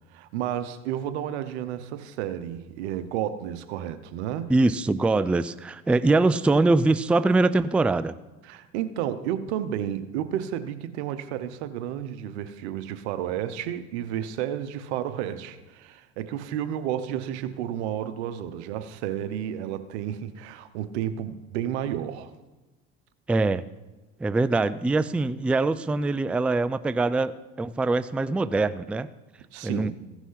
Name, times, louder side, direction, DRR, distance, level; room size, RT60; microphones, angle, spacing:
voice 1, 0.1-4.5 8.4-22.3 29.5-29.9, right 10 dB, 85° right, 12 dB, 0.9 m, -31 dB
voice 2, 4.5-8.2 23.3-23.6 24.2-29.1 29.6-29.9, right 3 dB, 5° right, 14 dB, 0.3 m, -23 dB
15.5 x 6.1 x 5.7 m, 1.2 s
supercardioid pair, 90°, 32 cm